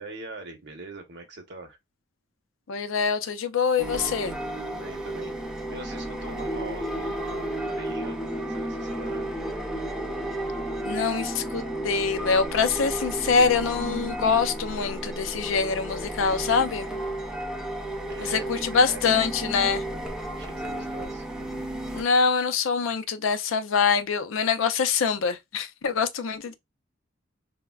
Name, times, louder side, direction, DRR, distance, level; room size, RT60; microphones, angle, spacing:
voice 1, 0.0-1.8 4.6-8.2 8.5-9.3 18.1-20.1 20.4-21.3, right 3 dB, 60° right, 0.8 m, -42 dB
voice 2, 2.7-4.4 10.8-16.9 18.2-19.8 21.9-26.5, left 5 dB, 80° left, 0.5 m, -24 dB
sound 1, 3.8-22.0, right 1 dB, 5° right, 0.4 m, -33 dB
3.4 x 2.1 x 2.2 m
head